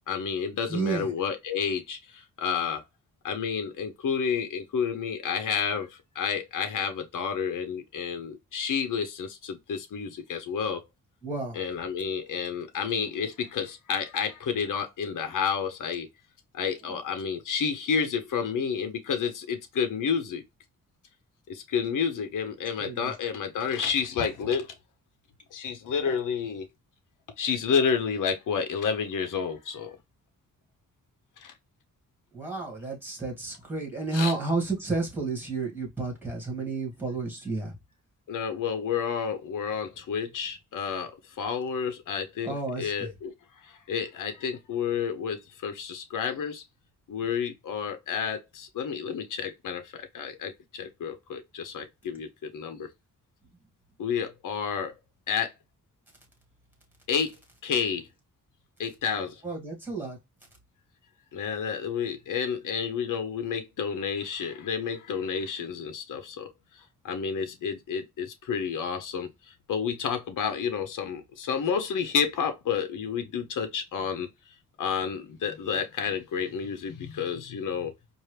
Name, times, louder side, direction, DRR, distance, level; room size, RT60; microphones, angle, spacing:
voice 1, 0.1-2.8 3.2-10.8 11.5-16.1 16.5-20.4 21.5-24.7 25.5-26.7 27.4-30.0 31.4-31.5 34.1-34.3 38.3-41.1 41.4-43.3 43.6-46.6 47.1-52.9 54.0-54.9 55.3-55.5 57.1-57.4 57.6-58.1 58.8-59.4 61.3-66.5 66.7-74.3 74.8-77.9, left 6 dB, 70° left, 0.9 m, -30 dB
voice 2, 0.7-1.1 11.2-11.6 16.8-17.0 22.8-23.1 32.3-37.7 42.4-43.1 59.4-60.2, right 3 dB, 5° right, 2.2 m, -31 dB
4.5 x 2.6 x 3.2 m
wide cardioid pair, 145°, 32 cm